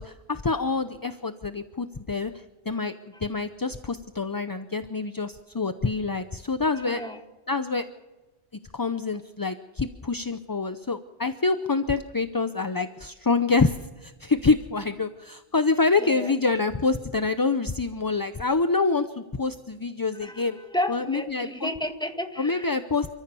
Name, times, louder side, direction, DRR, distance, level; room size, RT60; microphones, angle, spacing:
voice 1, 0.0-2.9 3.2-7.0 7.5-7.9 8.7-20.6 20.9-21.7 22.4-23.1, left 4 dB, 25° left, 10 dB, 0.5 m, -26 dB
voice 2, 6.8-7.2 16.0-16.3 20.2-22.7, left 1 dB, 5° left, 5 dB, 1.9 m, -32 dB
28.5 x 14.5 x 6.9 m, 1.1 s
omnidirectional pair, 1.1 m